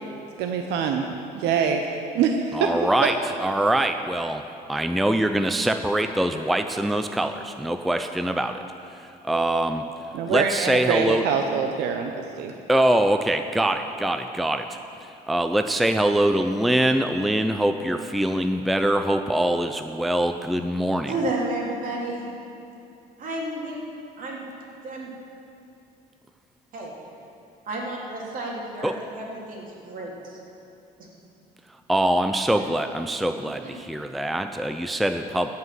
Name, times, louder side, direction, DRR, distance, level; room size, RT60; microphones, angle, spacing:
voice 1, 0.4-1.0 1.3-1.9 2.1-2.7 10.1-12.5, right 7 dB, 85° right, 4 dB, 0.8 m, -24 dB
voice 2, 2.5-4.4 4.7-8.6 8.9-9.8 10.3-11.3 12.7-21.1 28.8-29.0 31.9-35.5, right 1 dB, ahead, 7 dB, 0.4 m, -23 dB
voice 3, 21.0-22.3 23.2-23.8 24.2-24.5 24.8-25.1 26.7-26.9 27.7-30.4 31.0-31.1 32.5-32.6 33.6-33.7, right 2 dB, 55° right, -3 dB, 3.0 m, -31 dB
16.0 x 5.8 x 7.6 m, 2.7 s
cardioid pair, 110°, 17 cm